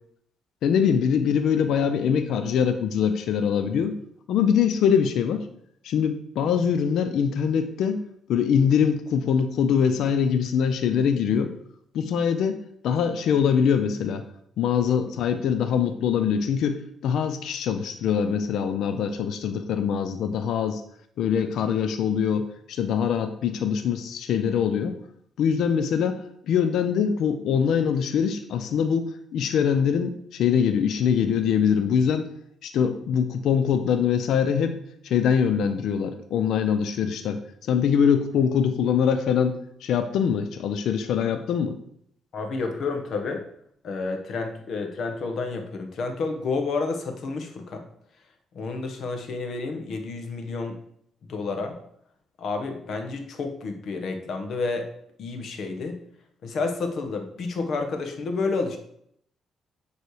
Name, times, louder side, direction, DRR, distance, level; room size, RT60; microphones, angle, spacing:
voice 1, 0.6-4.0 4.3-5.5 5.8-8.0 8.3-11.5 11.9-14.2 14.6-20.8 21.2-25.0 25.4-32.3 32.6-34.8 35.0-41.8, left 7 dB, 70° left, 8 dB, 0.5 m, -23 dB
voice 2, 42.3-43.4 43.8-47.8 48.5-50.8 51.3-51.8 52.4-54.9 55.2-56.0 56.4-58.8, left 3 dB, 50° left, 5 dB, 1.0 m, -30 dB
9.3 x 3.2 x 4.8 m, 0.70 s
cardioid pair, 165°, 0 cm